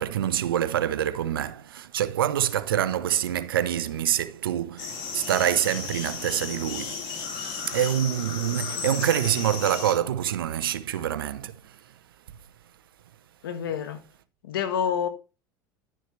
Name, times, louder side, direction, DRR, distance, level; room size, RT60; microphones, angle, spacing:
voice 1, 0.0-7.2 7.6-11.8, right 10 dB, 90° right, 0.8 m, -26 dB
sound 1, 4.8-9.9, left 5 dB, 65° left, 3.6 m, -34 dB
voice 2, 8.4-8.8 13.4-14.0 14.4-15.1, left 8 dB, 85° left, 1.6 m, -29 dB
11.5 x 6.4 x 3.2 m
hypercardioid pair, 85°, 11 cm